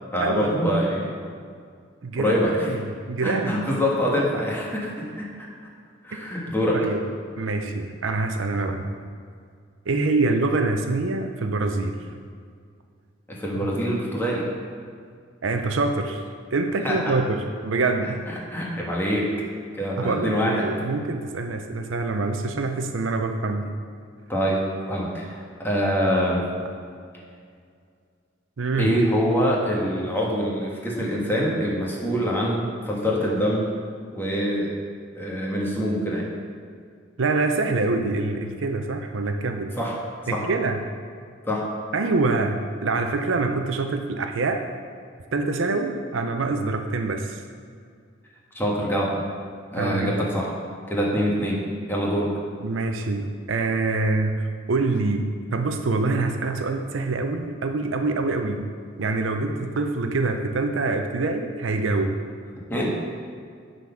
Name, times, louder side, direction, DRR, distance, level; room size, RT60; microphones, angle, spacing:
voice 1, 0.1-1.1 2.2-2.7 3.2-5.3 6.0-6.9 13.3-14.5 16.8-17.2 18.3-19.3 19.7-20.7 24.3-26.5 28.8-33.7 34.1-34.7 35.1-36.2 39.7-40.0 40.3-40.4 41.4-41.7 48.5-49.2 49.7-50.5 50.9-51.6 51.9-52.3 62.7-63.2, equal, 10° left, -4 dB, 1.4 m, -25 dB
voice 2, 2.0-3.7 6.4-7.0 7.4-8.9 9.9-12.0 13.6-13.7 15.4-16.2 16.5-18.2 20.0-23.7 28.6-28.9 37.2-39.7 40.3-40.8 41.9-44.6 45.3-47.4 49.8-50.1 52.6-54.4 54.7-58.7 59.0-62.2, right 3 dB, 75° right, 6 dB, 0.6 m, -25 dB
9.2 x 4.0 x 5.7 m, 2.2 s
head